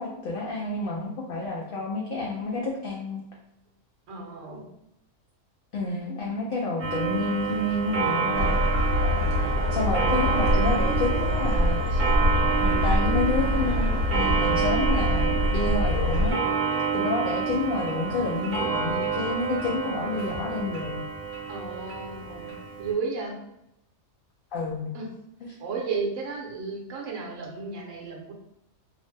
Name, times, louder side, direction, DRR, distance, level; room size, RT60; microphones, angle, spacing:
voice 1, 0.0-3.2 5.7-8.6 9.7-12.0 12.6-16.4 16.9-21.0 24.5-24.9 25.4-25.6, left 3 dB, 65° left, -3 dB, 0.5 m, -29 dB
voice 2, 4.1-4.6 8.3-9.5 21.5-22.5 22.8-23.4 24.9-25.1 25.6-28.3, right 4 dB, 70° right, -1 dB, 1.0 m, -34 dB
Clock, 6.8-22.9, right 5 dB, 45° right, 0.9 m, -29 dB
sound 1, 8.3-16.3, left 1 dB, 40° left, 1.0 m, -24 dB
2.7 x 2.0 x 3.2 m, 0.82 s
omnidirectional pair, 1.4 m